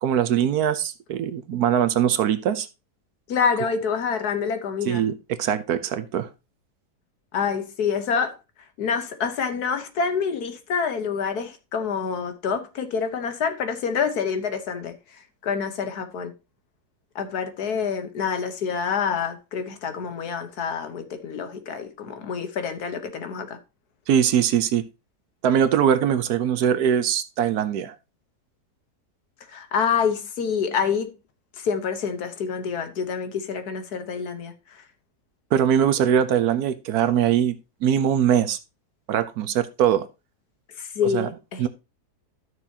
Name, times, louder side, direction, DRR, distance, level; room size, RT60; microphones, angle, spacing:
voice 1, 0.0-2.7 4.8-5.1 5.4-6.3 24.1-24.8 25.4-27.9 35.5-37.6 37.8-38.6 39.1-40.1 41.1-41.3 41.6-41.7, right 9 dB, 70° right, 1.2 m, -21 dB
voice 2, 3.3-5.0 7.3-8.4 8.8-14.9 15.4-16.3 17.1-23.6 29.5-31.1 31.6-34.8 40.8-41.6, left 6 dB, 70° left, 1.5 m, -27 dB
12.0 x 6.5 x 2.8 m
omnidirectional pair, 1.8 m